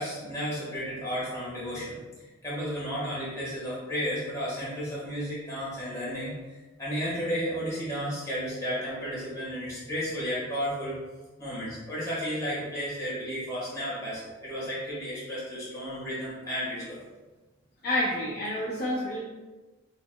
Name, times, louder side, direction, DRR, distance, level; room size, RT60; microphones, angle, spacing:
voice 1, 0.0-11.0 11.4-17.0, equal, 15° left, -9 dB, 1.4 m, -33 dB
voice 2, 17.8-19.2, left 1 dB, 45° left, -7 dB, 0.6 m, -28 dB
4.2 x 2.9 x 2.3 m, 1.2 s
head